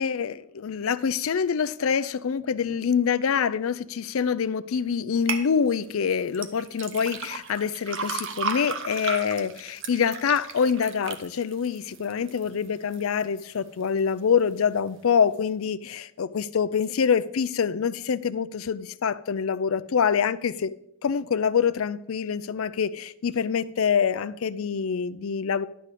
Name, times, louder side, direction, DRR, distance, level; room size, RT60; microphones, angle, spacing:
voice 1, 0.0-20.7 21.0-25.7, left 6 dB, 75° left, 0.5 m, -25 dB
sound 1, 5.3-5.5 6.3-12.5 12.9-13.4 13.9-14.0, right 5 dB, 60° right, 0.9 m, -34 dB
11.0 x 4.2 x 7.9 m
head